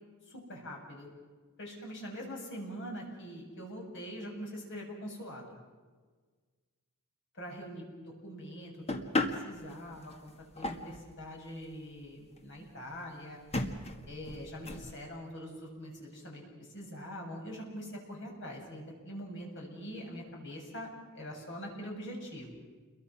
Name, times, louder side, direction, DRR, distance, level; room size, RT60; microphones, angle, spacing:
voice 1, 0.3-1.1 1.6-5.6 7.3-8.7 9.3-13.4 14.1-22.5, equal, 55° left, 0 dB, 7.1 m, -43 dB
Wood Carving Off Mic, 8.9-11.1 11.7-11.8 12.0-12.1 12.4-12.5 13.0-13.1 13.5-14.9, left 2 dB, 30° left, 1.8 m, -35 dB
29.5 x 23.0 x 6.2 m, 1.4 s
head